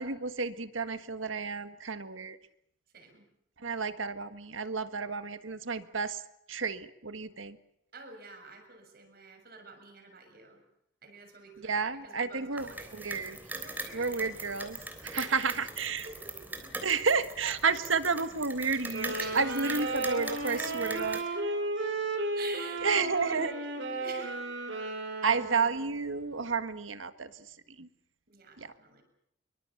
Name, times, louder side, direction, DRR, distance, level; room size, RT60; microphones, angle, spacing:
voice 1, 0.0-2.4 3.6-6.2 6.5-7.6 11.6-13.4 13.9-16.0 16.8-21.2 22.8-23.5 25.2-27.5 27.8-27.9 28.6-28.7, right 4 dB, 90° right, 10 dB, 1.6 m, -31 dB
voice 2, 2.9-3.3 7.2-7.4 7.9-10.6 11.0-13.0 13.5-14.2 15.0-15.5 16.0-16.7 19.2-20.0 22.3-24.4 28.3-29.0, right 4 dB, 50° right, 5 dB, 6.9 m, -48 dB
sound 1, 12.6-21.2, right 2 dB, 10° right, 3.5 m, -41 dB
sound 2, 18.9-26.0, right 2 dB, 70° right, 5.9 m, -34 dB
25.5 x 24.0 x 7.2 m, 0.76 s
head